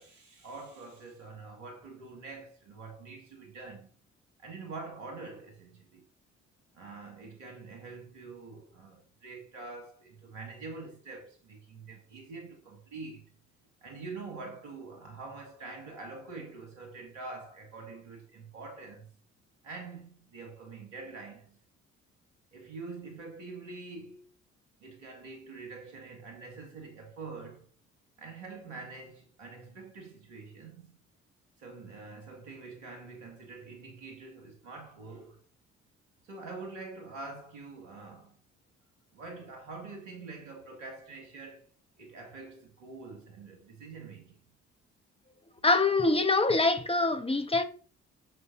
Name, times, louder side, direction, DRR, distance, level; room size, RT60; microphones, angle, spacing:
voice 1, 0.0-3.9 4.4-6.0 6.7-13.3 13.8-19.1 19.6-21.6 22.5-24.3 24.8-27.7 28.2-31.0 31.6-35.4 36.2-38.4 39.1-41.7 42.0-44.4, right 3 dB, 80° right, 2.0 m, -45 dB
voice 2, 45.6-47.6, left 3 dB, 15° left, 1.4 m, -24 dB
7.5 x 6.3 x 3.8 m
hypercardioid pair, 45°, 36 cm